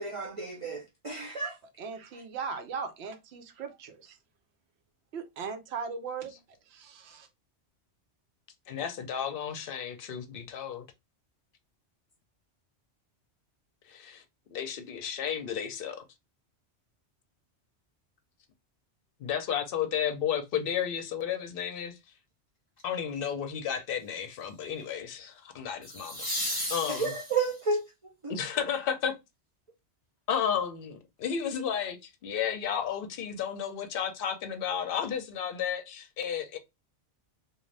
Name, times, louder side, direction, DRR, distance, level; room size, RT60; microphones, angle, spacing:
voice 1, 0.0-1.6 2.1-2.2 26.9-28.3, right 4 dB, 45° right, 0.4 m, -32 dB
voice 2, 1.8-4.2 5.1-6.3 6.7-7.3, right 5 dB, 65° right, 0.9 m, -38 dB
voice 3, 8.7-10.9 13.9-14.2 14.5-16.0 19.2-21.9 22.8-26.3 26.7-27.1 28.3-29.1 30.3-36.6, left 8 dB, 60° left, 0.7 m, -32 dB
sound 1, 22.8-23.1 25.8-27.7 30.6-30.7, equal, 20° left, 1.0 m, -35 dB
2.5 x 2.4 x 3.2 m
omnidirectional pair, 1.2 m